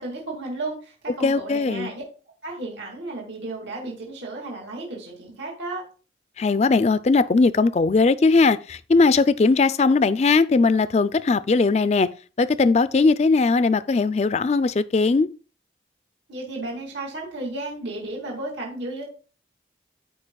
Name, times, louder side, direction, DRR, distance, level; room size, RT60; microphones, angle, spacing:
voice 1, 0.0-2.0 2.4-5.8 16.3-19.0, right 2 dB, 85° right, 2.3 m, -33 dB
voice 2, 1.2-1.9 6.4-12.1 12.4-15.3, left 4 dB, 35° left, 0.3 m, -19 dB
14.0 x 4.9 x 2.3 m
head